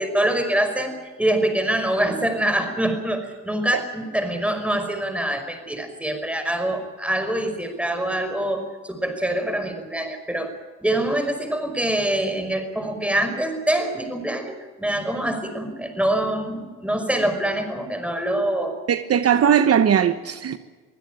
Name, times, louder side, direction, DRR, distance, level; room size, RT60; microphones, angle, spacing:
voice 1, 0.0-10.5 10.8-18.8, right 1 dB, 5° right, 7 dB, 5.5 m, -25 dB
voice 2, 18.9-20.6, right 8 dB, 50° right, 11 dB, 1.2 m, -19 dB
24.0 x 16.5 x 9.0 m, 1.4 s
cardioid pair, 90°, 30 cm